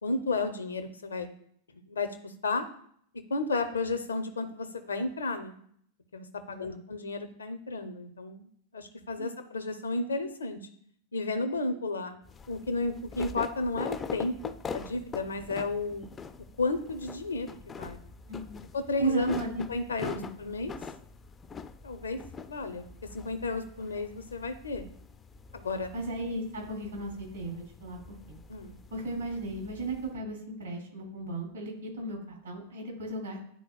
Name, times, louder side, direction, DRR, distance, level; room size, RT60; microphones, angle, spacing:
voice 1, 0.0-1.3 1.7-2.7 3.3-5.6 6.1-10.6 11.1-12.1 12.5-16.0 16.6-18.0 18.7-19.4 19.7-20.7 21.8-22.2 22.5-22.9 23.1-24.9 25.5-25.9 28.5-28.8, left 3 dB, 70° left, 8 dB, 0.5 m, -33 dB
voice 2, 6.5-6.8 9.2-9.4 18.3-18.6 19.0-19.6 20.1-20.3 25.9-28.4 28.9-33.4, right 2 dB, 70° right, 0 dB, 2.6 m, -36 dB
sound 1, 12.2-30.1, left 5 dB, 20° left, 0.3 m, -43 dB
10.5 x 3.9 x 2.3 m, 0.65 s
figure-of-eight pair, 90°, 0 cm